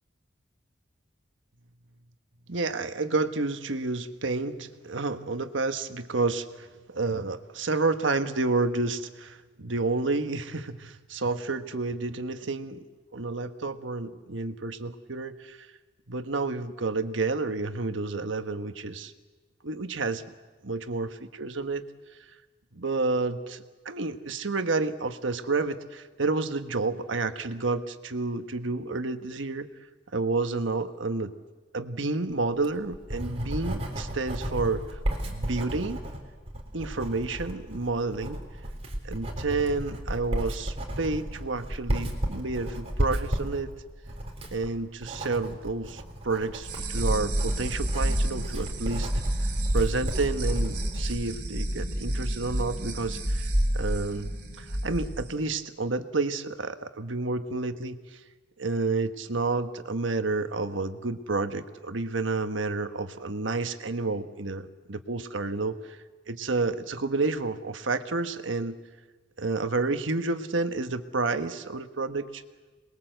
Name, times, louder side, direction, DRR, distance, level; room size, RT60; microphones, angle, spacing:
voice 1, 2.5-12.8 13.1-15.7 16.1-19.1 19.6-20.2 20.6-21.8 22.7-29.7 30.1-31.3 31.7-35.0 35.2-36.0 36.7-38.4 39.0-43.7 44.5-49.1 49.7-54.3 54.6-58.2 58.6-66.0 66.3-68.8 69.4-72.4, right 3 dB, 85° right, 8 dB, 1.3 m, -30 dB
Writing, 32.5-51.2, equal, 35° right, 3.8 m, -34 dB
sound 1, 46.6-55.2, right 1 dB, 60° right, 4.6 m, -29 dB
27.0 x 21.0 x 7.9 m, 1.3 s
head